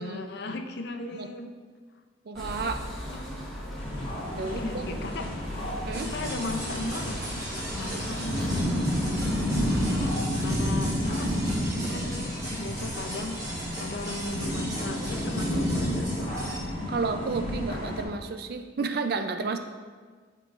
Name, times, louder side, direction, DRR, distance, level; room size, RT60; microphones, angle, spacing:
voice 1, 0.0-1.5 3.1-3.3 4.4-5.3 6.0-7.2 7.7-8.6 9.2-9.8 10.3-11.4 11.9-16.4, left 2 dB, 55° left, 5 dB, 0.5 m, -37 dB
sound 1, 2.3-10.1, equal, ahead, 1.2 m, -38 dB
voice 2, 2.3-2.8 4.4-4.8 5.9-6.1 16.9-19.6, right 4 dB, 50° right, 8 dB, 0.4 m, -31 dB
sound 2, 3.8-18.0, equal, 30° left, 1.0 m, -31 dB
sound 3, 5.9-16.6, right 1 dB, 15° right, 1.1 m, -37 dB
11.0 x 3.8 x 2.5 m, 1.5 s
head